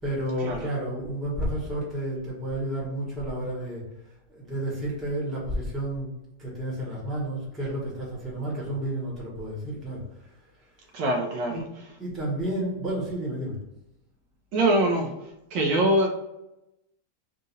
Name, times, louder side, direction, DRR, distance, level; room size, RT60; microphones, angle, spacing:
voice 1, 0.0-3.8 4.3-6.1 6.4-10.0 11.5-11.6 12.0-13.6, right 1 dB, ahead, -5 dB, 1.0 m, -31 dB
voice 2, 10.9-11.6 14.5-15.1 15.5-16.1, right 1 dB, 70° right, 1 dB, 1.3 m, -23 dB
3.9 x 2.5 x 4.0 m, 0.90 s
omnidirectional pair, 2.1 m